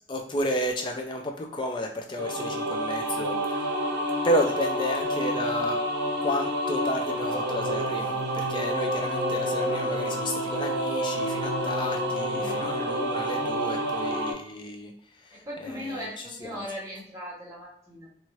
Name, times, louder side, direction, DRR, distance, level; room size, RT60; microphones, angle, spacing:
voice 1, 0.1-3.7 4.2-5.8 6.2-14.9 15.2-16.1 16.4-16.6, equal, 25° left, 3 dB, 0.3 m, -32 dB
sound 1, 2.1-14.3, equal, 70° right, 0.6 m, -28 dB
voice 2, 12.4-12.7 15.3-18.1, equal, 15° right, -6 dB, 0.8 m, -38 dB
3.0 x 2.4 x 2.9 m, 0.68 s
head